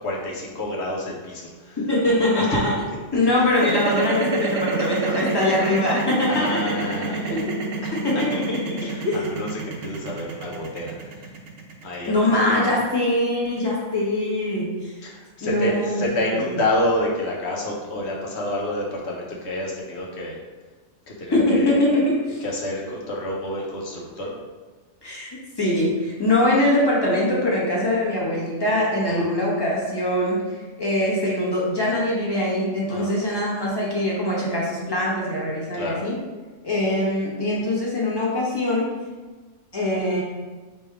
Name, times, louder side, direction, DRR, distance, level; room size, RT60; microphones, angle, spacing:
voice 1, 0.0-1.8 2.1-2.5 3.1-3.4 4.8-5.0 6.3-7.4 7.8-8.2 8.8-11.2 11.8-12.7 15.0-20.4 21.1-21.8 22.4-24.3 29.1-29.3 32.9-33.1 35.7-36.0, left 1 dB, 60° left, -2 dB, 1.1 m, -29 dB
voice 2, 1.8-2.7 3.1-6.7 7.3-7.5 8.0-8.8 9.0-9.2 12.0-14.9 15.4-16.0 16.3-16.4 21.3-22.4 25.0-30.4 30.8-36.1 36.6-38.8 39.7-40.2, left 1 dB, 20° left, -5 dB, 1.0 m, -22 dB
sound 1, 3.5-13.7, right 4 dB, 85° right, 1.0 m, -28 dB
3.4 x 3.2 x 4.7 m, 1.3 s
omnidirectional pair, 1.3 m